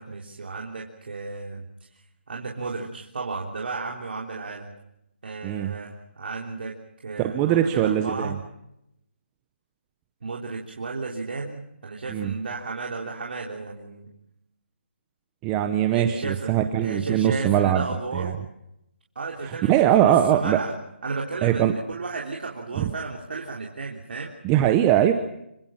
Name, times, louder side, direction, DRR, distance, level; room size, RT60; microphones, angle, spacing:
voice 1, 0.0-1.6 2.3-4.7 5.2-6.7 7.0-8.4 10.2-14.1 15.9-18.4 19.2-20.7 21.0-24.3, right 3 dB, 55° right, -1 dB, 3.6 m, -33 dB
voice 2, 7.2-8.4 12.1-12.3 15.4-17.8 18.2-18.3 19.7-20.6 21.4-21.7 22.8-22.9 24.4-25.1, right 11 dB, 15° right, 8 dB, 0.9 m, -21 dB
26.5 x 25.0 x 5.8 m, 0.83 s
hypercardioid pair, 165°, 6 cm